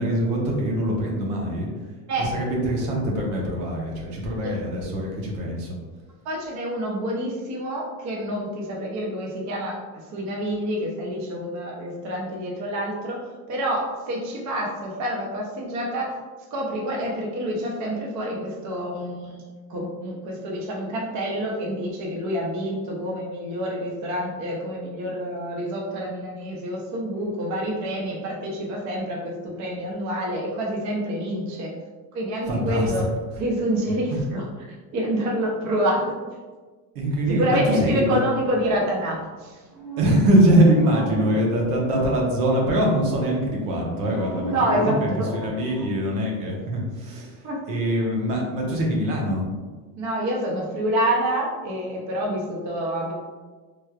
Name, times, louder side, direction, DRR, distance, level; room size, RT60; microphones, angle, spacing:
voice 1, 0.0-1.7 2.2-5.8 32.5-32.9 36.9-38.2 40.0-47.4 47.7-49.4, right 1 dB, 75° right, -1 dB, 1.1 m, -23 dB
voice 2, 6.2-16.2 16.5-19.4 19.7-31.7 32.1-33.0 33.4-36.0 37.3-39.6 44.4-45.4 47.4-47.6 50.0-53.1, equal, 35° right, -2 dB, 0.7 m, -27 dB
sound 1, 38.0-42.6 43.7-45.9, right 2 dB, 5° left, 0.6 m, -37 dB
3.3 x 3.1 x 2.3 m, 1.4 s
supercardioid pair, 120°, 46 cm